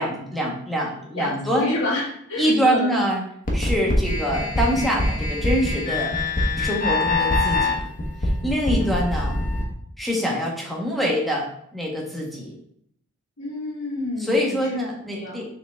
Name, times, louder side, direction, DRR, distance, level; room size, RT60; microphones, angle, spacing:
voice 1, 0.0-1.7 2.4-3.2 3.5-6.1 6.5-7.8 8.4-9.4 10.0-11.4 11.7-12.5 14.2-15.4, equal, ahead, -2 dB, 1.4 m, -24 dB
voice 2, 1.2-2.9 13.4-14.8 15.1-15.4, left 2 dB, 70° left, -8 dB, 1.9 m, -29 dB
sound 1, 3.5-9.6, left 2 dB, 40° left, 1.3 m, -24 dB
6.6 x 3.9 x 3.6 m, 0.69 s
head